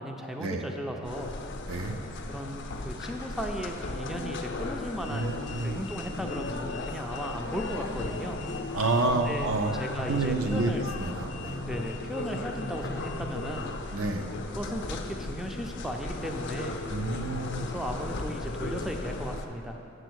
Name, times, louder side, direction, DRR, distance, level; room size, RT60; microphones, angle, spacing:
voice 1, 0.0-1.3 2.3-8.4 9.1-10.8 11.6-13.7 14.5-16.8 17.6-19.8, equal, ahead, 2 dB, 0.4 m, -36 dB
sound 1, 1.0-19.5, left 2 dB, 55° left, 0.6 m, -36 dB
voice 2, 5.1-5.8 8.7-9.8 10.1-10.7 11.0-11.6 13.9-14.3 16.9-17.7, right 3 dB, 75° right, 4 dB, 0.6 m, -29 dB
7.8 x 5.0 x 6.3 m, 2.7 s
head